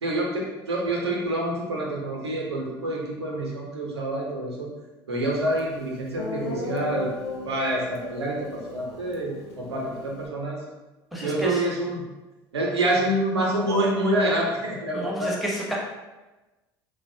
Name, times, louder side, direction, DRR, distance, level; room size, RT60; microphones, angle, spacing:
voice 1, 0.0-4.7 5.1-7.1 7.4-10.6 11.2-12.1 12.5-15.3, right 1 dB, 90° right, -2 dB, 0.6 m, -27 dB
Guitar, 5.6-5.7 6.2-10.3, left 3 dB, 80° left, 0.4 m, -36 dB
voice 2, 11.1-11.7 14.9-15.8, right 1 dB, ahead, -4 dB, 0.8 m, -30 dB
3.1 x 2.1 x 2.6 m, 1.1 s
hypercardioid pair, 65°, 14 cm